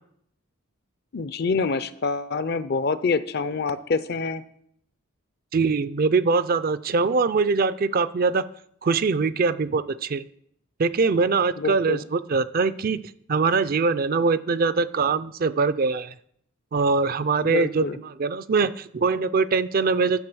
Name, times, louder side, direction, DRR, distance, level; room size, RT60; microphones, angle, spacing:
voice 1, 1.1-4.4 11.6-12.0 17.4-18.0, left 4 dB, 50° left, 15 dB, 0.5 m, -26 dB
voice 2, 5.5-8.4 8.8-10.2 10.8-13.0 13.3-16.1 16.7-17.9 18.2-20.2, right 4 dB, 45° right, 15 dB, 0.4 m, -22 dB
10.5 x 7.3 x 6.2 m, 0.69 s
head